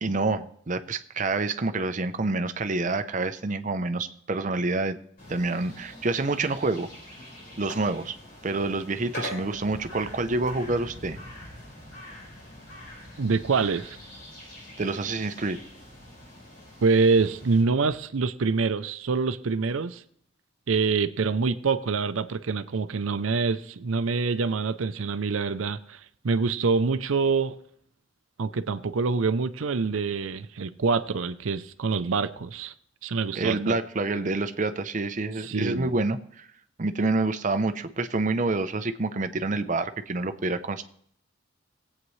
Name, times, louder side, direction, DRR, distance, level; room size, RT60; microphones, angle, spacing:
voice 1, 0.0-5.0 5.3-6.9 7.6-8.2 8.4-11.2 14.8-15.6 33.3-36.5 36.8-40.8, right 3 dB, 40° right, 10 dB, 0.6 m, -27 dB
sound 1, 5.2-17.6, left 1 dB, 45° left, 4.9 m, -43 dB
voice 2, 13.2-14.0 16.8-20.0 20.7-26.0 26.2-27.6 28.4-32.7 33.0-33.8 35.4-35.9, right 4 dB, 80° right, 12 dB, 0.6 m, -25 dB
19.5 x 8.4 x 3.2 m, 0.66 s
head